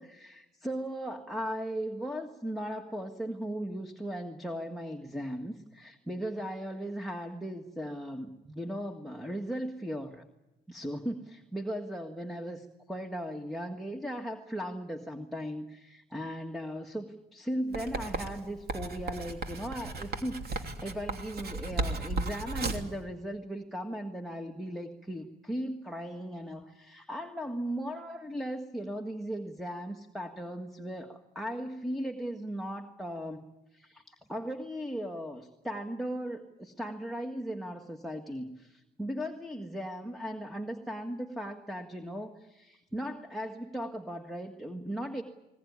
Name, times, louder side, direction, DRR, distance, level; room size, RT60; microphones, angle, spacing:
voice 1, 0.0-10.2 10.7-33.4 33.7-45.2, equal, ahead, 5 dB, 1.8 m, -37 dB
Writing, 17.7-22.9, right 3 dB, 50° right, 2.9 m, -35 dB
21.0 x 20.5 x 9.7 m, 0.99 s
cardioid pair, 90°, 20 cm